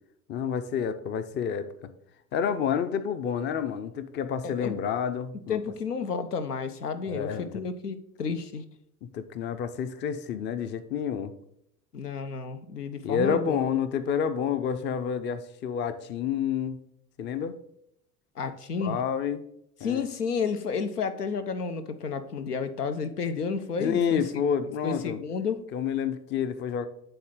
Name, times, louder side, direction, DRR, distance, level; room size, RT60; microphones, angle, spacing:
voice 1, 0.3-1.9 2.3-5.6 7.1-7.6 9.0-11.3 13.0-16.8 17.2-17.6 18.8-19.4 19.8-20.1 23.8-25.2 25.7-26.9, left 7 dB, 25° left, 11 dB, 0.5 m, -29 dB
voice 2, 4.4-4.8 5.3-8.6 11.9-13.6 18.4-19.0 19.8-24.4 24.8-25.7, left 5 dB, 85° left, 9 dB, 0.6 m, -31 dB
8.9 x 3.8 x 3.7 m, 0.76 s
figure-of-eight pair, 65°, 45 cm